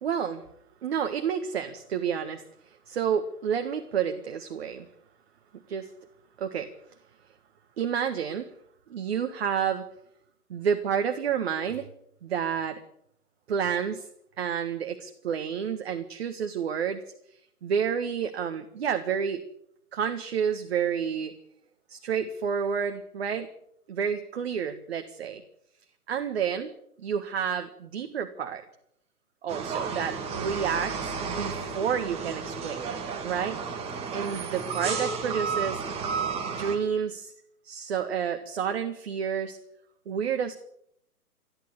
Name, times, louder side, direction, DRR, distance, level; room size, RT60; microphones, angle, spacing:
voice 1, 0.0-0.4 0.8-4.9 5.7-5.9 6.4-6.7 7.8-8.5 8.9-9.9 10.5-11.9 12.2-12.8 13.5-14.1 14.4-17.0 17.6-19.4 19.9-21.3 21.9-23.5 23.9-25.4 26.1-26.7 27.0-28.6 29.4-33.6 34.1-35.8 36.5-37.3 37.6-39.6 40.0-40.5, right 7 dB, 40° right, 7 dB, 1.7 m, -30 dB
sound 1, 29.5-36.8, right 5 dB, 15° right, 2.6 m, -32 dB
29.0 x 11.5 x 8.3 m, 0.74 s
figure-of-eight pair, 135°, 46 cm